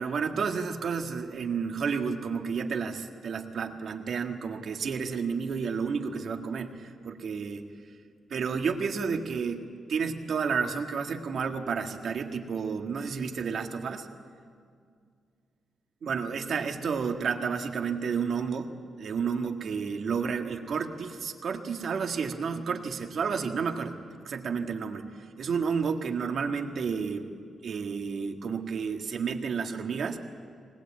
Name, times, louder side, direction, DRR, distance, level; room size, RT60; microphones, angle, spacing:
voice 1, 0.0-7.7 8.3-14.1 16.0-18.7 19.0-25.1 25.4-27.3 27.6-30.2, right 5 dB, 65° right, 5 dB, 1.7 m, -31 dB
20.0 x 20.0 x 8.5 m, 2.2 s
cardioid pair, 85°, 0 cm